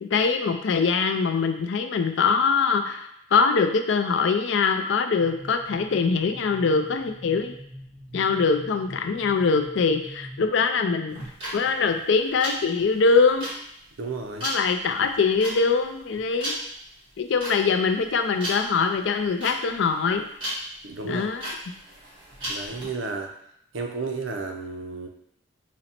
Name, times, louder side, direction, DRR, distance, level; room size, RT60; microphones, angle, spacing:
voice 1, 0.0-7.5 8.1-11.2 11.5-13.5 14.4-16.5 17.2-20.3 21.0-21.5, left 5 dB, 65° left, 6 dB, 0.4 m, -23 dB
sound 1, 5.2-10.5, equal, 60° right, 1.1 m, -44 dB
sound 2, 11.1-22.8, equal, 25° right, 1.4 m, -36 dB
voice 2, 14.0-14.5 20.8-21.3 22.5-23.3 23.7-25.1, right 4 dB, 80° right, 3 dB, 0.6 m, -32 dB
3.9 x 2.1 x 4.2 m, 0.73 s
head